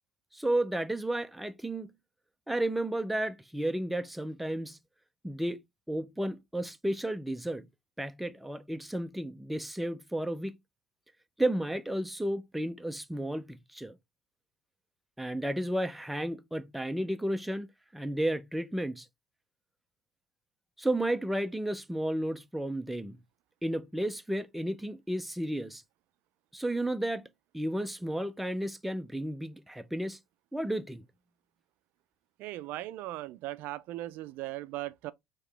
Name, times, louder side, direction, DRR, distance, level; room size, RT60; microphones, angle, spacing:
voice 1, 0.3-1.9 2.5-4.8 5.2-5.6 5.9-7.7 8.0-10.6 11.4-13.9 15.2-19.1 20.8-23.2 23.6-25.8 26.5-27.3 27.5-30.2 30.5-31.0, right 1 dB, ahead, 0.4 m, -32 dB
voice 2, 32.4-35.1, right 16 dB, 60° right, 0.4 m, -38 dB
4.8 x 2.9 x 3.2 m
cardioid pair, 130°, 4 cm